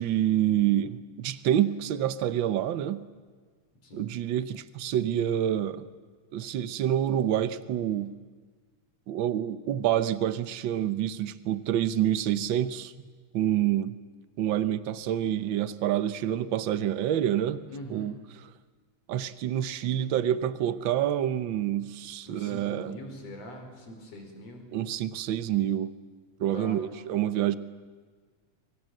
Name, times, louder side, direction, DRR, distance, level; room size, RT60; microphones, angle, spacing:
voice 1, 0.0-3.1 3.9-5.9 6.3-8.1 9.1-12.9 13.3-14.0 14.4-17.6 17.9-18.5 19.1-23.0 24.7-25.9 26.4-27.6, right 11 dB, 80° right, 13 dB, 1.1 m, -27 dB
voice 2, 17.7-18.1 22.2-24.6 26.5-26.8, left 1 dB, 55° left, 4 dB, 5.8 m, -42 dB
28.0 x 24.5 x 7.8 m, 1.5 s
omnidirectional pair, 3.4 m